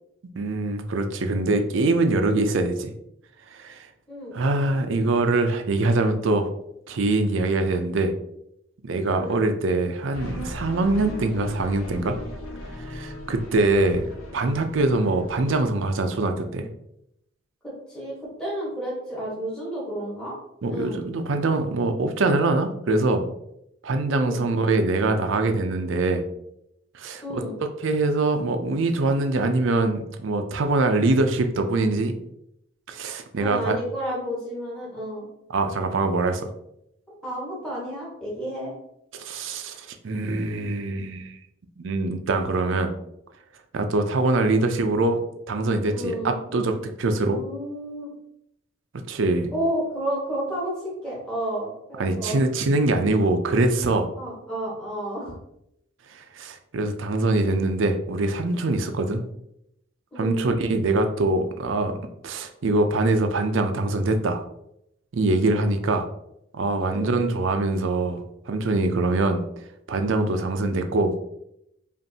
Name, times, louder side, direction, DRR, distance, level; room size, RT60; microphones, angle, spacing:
voice 1, 0.4-2.9 3.5-3.9 4.3-6.5 6.9-8.1 8.8-12.2 12.8-14.1 14.3-16.7 20.6-23.3 23.8-26.2 26.9-27.4 27.8-32.2 32.9-33.8 35.5-36.5 39.1-41.4 41.8-42.9 43.7-45.2 45.5-47.4 49.1-49.5 52.0-54.1 56.1-59.2 60.2-61.9 62.2-64.4 65.1-66.1 66.5-69.4 69.9-71.1, right 2 dB, 70° right, 7 dB, 0.5 m, -23 dB
voice 2, 9.1-9.5 17.6-20.4 20.7-21.0 24.1-24.4 27.2-27.5 33.4-35.3 37.1-38.7 45.9-46.4 47.2-48.1 49.5-52.4 54.2-55.4 60.1-60.6 66.8-67.1, right 1 dB, 5° left, -7 dB, 1.3 m, -31 dB
sound 1, 10.1-15.7, left 1 dB, 90° left, 0.9 m, -37 dB
5.2 x 2.5 x 2.7 m, 0.79 s
head